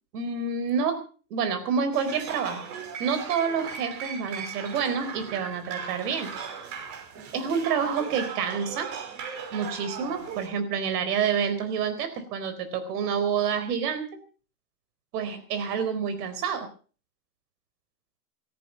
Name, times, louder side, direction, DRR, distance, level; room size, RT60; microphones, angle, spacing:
voice 1, 0.1-1.0 1.3-2.6 3.0-6.3 7.3-8.9 9.5-14.1 15.1-16.7, right 6 dB, 70° right, 11 dB, 4.2 m, -28 dB
sound 1, 1.9-10.5, right 6 dB, 55° right, 5.6 m, -38 dB
17.0 x 14.5 x 5.2 m, 0.40 s
supercardioid pair, 140°, 48 cm